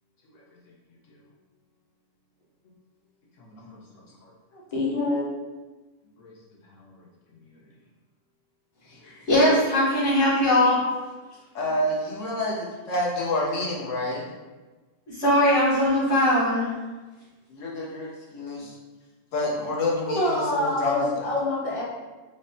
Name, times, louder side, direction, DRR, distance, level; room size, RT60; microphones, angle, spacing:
voice 1, 3.4-3.8 4.2-4.3 6.2-6.4 6.7-7.0 8.9-9.0 11.5-14.3 17.5-18.8 19.3-21.0, left 1 dB, 80° left, -3 dB, 1.2 m, -29 dB
voice 2, 4.5-5.2 10.7-10.9 20.1-21.8, left 2 dB, 35° left, -4 dB, 0.6 m, -26 dB
voice 3, 9.3-10.8 15.1-16.8, left 1 dB, 60° left, -13 dB, 1.6 m, -20 dB
5.2 x 2.1 x 2.6 m, 1.2 s
omnidirectional pair, 1.3 m